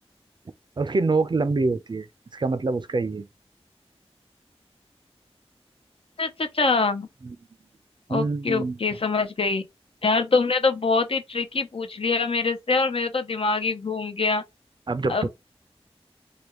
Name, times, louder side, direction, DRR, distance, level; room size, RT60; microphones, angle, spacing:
voice 1, 0.8-2.1 2.3-3.3 7.2-7.4 8.1-8.8 14.9-15.3, right 3 dB, 45° right, 0.4 m, -25 dB
voice 2, 6.2-7.1 8.1-9.6 10.0-14.4 15.1-15.3, left 4 dB, 60° left, 0.6 m, -24 dB
3.4 x 2.2 x 2.9 m
wide cardioid pair, 50°, 11 cm